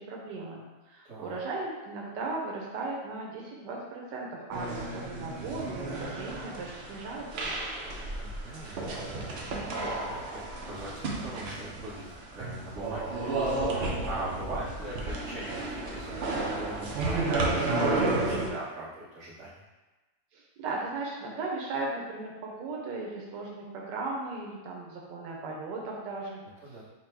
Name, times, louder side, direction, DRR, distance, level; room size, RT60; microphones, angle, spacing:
voice 1, 0.0-7.5 20.3-26.4, right 3 dB, 90° right, -1 dB, 1.4 m, -37 dB
voice 2, 1.0-1.4 8.2-19.5 26.6-26.8, right 1 dB, 45° right, -9 dB, 1.5 m, -41 dB
sound 1, 4.5-18.5, right 2 dB, 70° right, 0.6 m, -32 dB
4.4 x 2.2 x 4.5 m, 1.2 s
omnidirectional pair, 1.8 m